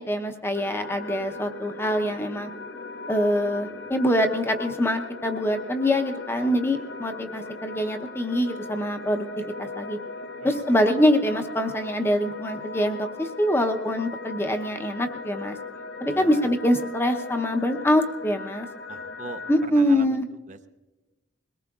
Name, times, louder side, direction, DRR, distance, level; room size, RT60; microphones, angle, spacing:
voice 1, 0.0-2.5 3.1-9.2 9.6-10.0 10.4-15.6 16.0-18.7 19.5-20.3, equal, 15° left, 5 dB, 0.7 m, -24 dB
sound 1, 0.5-19.7, left 3 dB, 65° left, 0.6 m, -38 dB
voice 2, 16.1-16.5 18.9-19.4 19.7-20.2 20.5-20.7, right 4 dB, 40° right, 8 dB, 0.6 m, -41 dB
22.0 x 18.5 x 2.4 m, 1.2 s
head